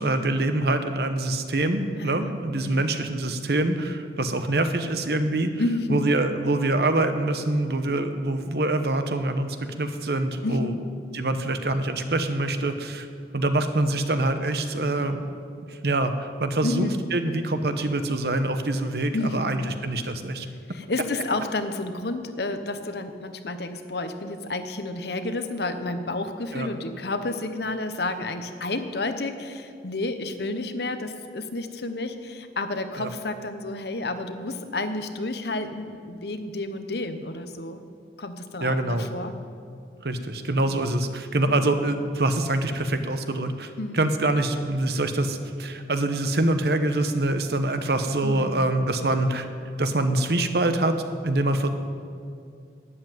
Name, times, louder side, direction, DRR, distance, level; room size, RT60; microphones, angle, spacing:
voice 1, 0.0-5.5 5.9-10.7 11.1-13.1 13.3-15.3 15.7-20.5 26.5-26.7 33.0-33.1 38.6-39.1 40.0-49.5 49.8-51.7, right 2 dB, 60° right, 8 dB, 1.0 m, -25 dB
voice 2, 2.0-2.4 2.6-2.9 5.6-6.1 10.4-10.8 16.6-17.0 19.1-19.6 20.7-37.8 38.2-39.3 41.5-41.6 43.8-44.0 48.2-48.7, left 2 dB, 65° left, 9 dB, 1.0 m, -31 dB
12.5 x 8.4 x 9.2 m, 2.3 s
head